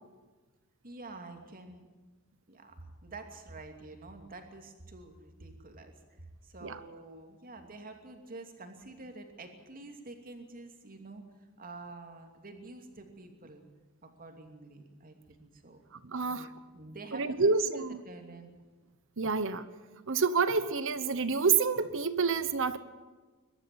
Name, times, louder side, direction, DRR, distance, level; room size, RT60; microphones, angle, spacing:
voice 1, 0.8-1.9 2.5-13.6 14.0-15.8 16.1-18.5, right 2 dB, 40° right, 4 dB, 2.8 m, -48 dB
voice 2, 16.0-16.5 17.1-18.0 19.2-19.6 20.1-22.8, right 5 dB, 60° right, 13 dB, 1.1 m, -28 dB
23.0 x 12.0 x 9.5 m, 1.3 s
head